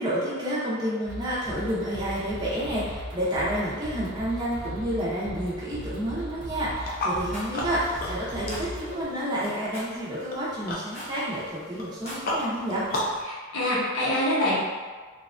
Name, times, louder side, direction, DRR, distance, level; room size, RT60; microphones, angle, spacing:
voice 1, 0.0-12.9, equal, 20° right, -8 dB, 0.5 m, -29 dB
sound 1, 1.0-9.0, equal, 80° right, 0.5 m, -38 dB
sound 2, 6.8-13.2, left 1 dB, 45° left, 0.4 m, -34 dB
Rattle, 7.3-7.5 8.5-8.6 9.7-9.9 10.9-11.2 11.9-12.3, equal, 30° left, 0.8 m, -39 dB
voice 2, 13.2-14.6, left 1 dB, 90° left, -6 dB, 0.6 m, -25 dB
2.7 x 2.2 x 2.4 m, 1.4 s
head